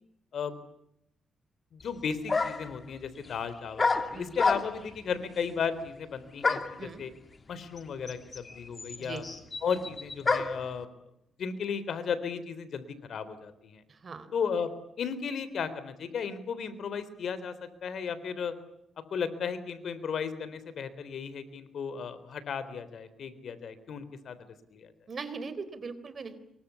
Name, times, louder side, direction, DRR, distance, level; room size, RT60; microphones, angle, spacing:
voice 1, 1.7-7.1 7.5-9.2 9.6-10.9 11.4-13.8 14.3-14.7 15.0-17.5 17.8-18.5 19.1-24.4 24.7-24.9, left 6 dB, 65° left, 14 dB, 3.8 m, -35 dB
sound 1, 1.8-1.9 2.3-2.8 3.8-4.9 6.4-6.8 7.8-7.9 8.1-10.7, left 4 dB, 30° left, 2.5 m, -29 dB
voice 2, 13.9-14.3 25.1-26.4, right 4 dB, 45° right, 13 dB, 3.9 m, -40 dB
26.5 x 23.5 x 8.5 m, 0.77 s
cardioid pair, 110°, 0 cm